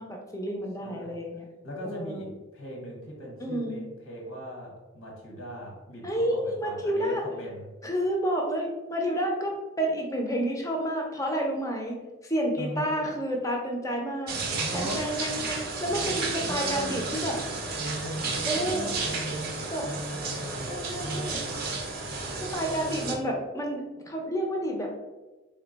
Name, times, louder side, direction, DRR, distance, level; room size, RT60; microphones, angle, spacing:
voice 1, 0.0-1.5 1.8-2.3 3.4-3.9 6.0-7.2 7.8-12.0 12.2-14.4 14.7-17.4 18.5-18.9 19.7-19.8 20.7-21.4 22.4-24.9, equal, 15° left, 1 dB, 0.5 m, -30 dB
voice 2, 0.8-1.1 1.6-7.7 12.6-13.0 14.5-15.1 15.9-17.1 17.8-21.7 22.6-23.2, equal, 85° left, -1 dB, 1.1 m, -39 dB
sound 1, 14.3-23.1, right 3 dB, 45° right, 0.5 m, -32 dB
3.7 x 2.2 x 3.8 m, 1.1 s
head